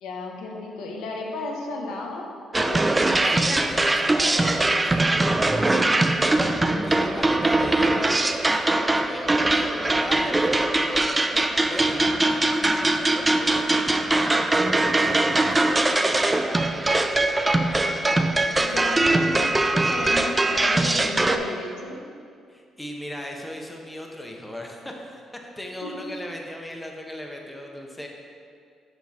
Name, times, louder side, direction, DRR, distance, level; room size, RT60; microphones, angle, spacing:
voice 1, 0.0-2.9 18.6-22.0 25.8-26.1, left 2 dB, 90° left, 0 dB, 0.8 m, -33 dB
sound 1, 2.5-21.4, right 2 dB, 20° right, 0.3 m, -22 dB
voice 2, 3.2-4.6 4.8-5.3 5.6-6.2 6.8-12.6 13.2-17.4 18.2-19.0 22.5-25.3 25.6-28.1, equal, 10° left, 1 dB, 0.8 m, -38 dB
7.1 x 3.0 x 5.6 m, 2.3 s
cardioid pair, 90°, 0 cm